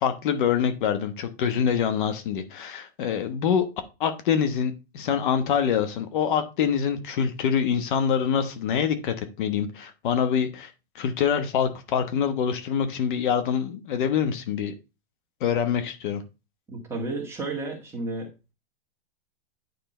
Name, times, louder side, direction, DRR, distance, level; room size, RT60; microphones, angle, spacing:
voice 1, 0.0-3.7 4.0-14.7 15.4-16.2, left 7 dB, 55° left, 8 dB, 1.1 m, -25 dB
voice 2, 16.7-18.5, right 2 dB, 10° right, -1 dB, 1.7 m, -32 dB
9.4 x 3.7 x 4.3 m, 0.28 s
supercardioid pair, 155°, 30 cm